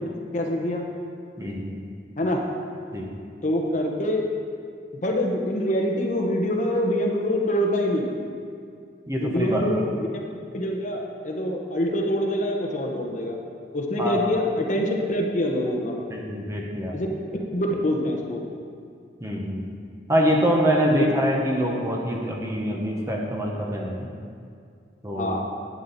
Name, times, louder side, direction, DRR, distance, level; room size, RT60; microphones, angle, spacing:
voice 1, 0.3-0.8 2.2-2.4 3.4-4.3 4.9-8.1 9.2-10.1 10.5-13.4 13.7-15.9 16.9-17.1 17.5-18.4 20.9-21.1 25.1-25.4, left 1 dB, 40° left, 0 dB, 1.1 m, -25 dB
voice 2, 1.4-1.9 2.9-3.1 9.1-9.6 14.0-14.2 16.1-17.0 19.2-19.7 20.1-24.1 25.0-25.4, equal, 15° right, -1 dB, 1.1 m, -25 dB
11.5 x 8.7 x 4.2 m, 2.3 s
head